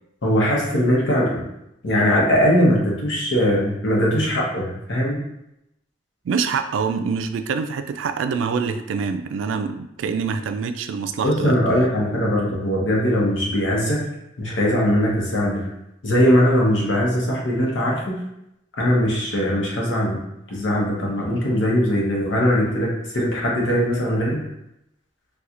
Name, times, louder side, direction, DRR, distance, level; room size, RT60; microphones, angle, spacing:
voice 1, 0.2-1.4 1.8-5.2 11.2-14.0 14.4-15.7 16.0-18.2 18.8-20.2 20.5-24.4, equal, 80° left, -3 dB, 0.9 m, -20 dB
voice 2, 6.3-11.6, right 5 dB, 85° right, 9 dB, 0.3 m, -25 dB
4.2 x 2.3 x 2.4 m, 0.83 s
head